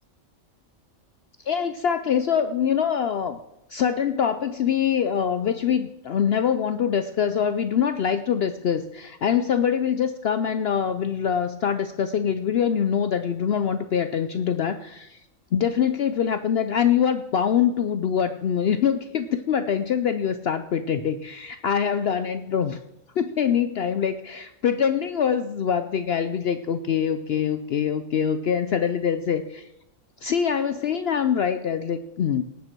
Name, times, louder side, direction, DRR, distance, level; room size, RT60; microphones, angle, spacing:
voice 1, 1.5-3.4 3.7-15.2 15.5-22.8 23.2-29.7 30.2-32.4, left 8 dB, 60° left, 10 dB, 0.7 m, -24 dB
18.0 x 9.4 x 4.5 m, 0.87 s
omnidirectional pair, 1.4 m